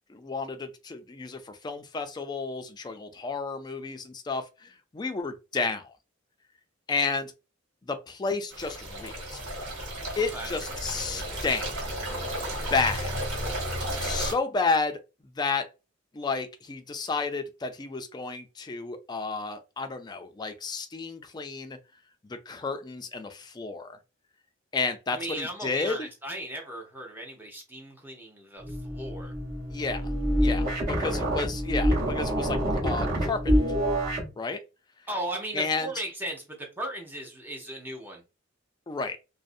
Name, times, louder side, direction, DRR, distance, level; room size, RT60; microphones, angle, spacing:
voice 1, 0.1-5.9 6.9-7.3 7.8-9.4 10.2-11.7 12.7-13.1 14.0-15.0 15.4-15.7 16.1-21.8 22.2-24.0 24.7-26.1 29.7-30.1 30.4-33.6 34.4-34.6 35.5-35.9 38.9-39.2, left 4 dB, 20° left, 0.3 m, -31 dB
sound 1, 8.5-14.3, right 1 dB, 75° right, 1.3 m, -33 dB
voice 2, 25.1-29.3 35.1-38.2, right 1 dB, 10° right, 0.7 m, -37 dB
sound 2, 28.6-34.3, equal, 50° right, 1.1 m, -27 dB
2.5 x 2.0 x 2.5 m
head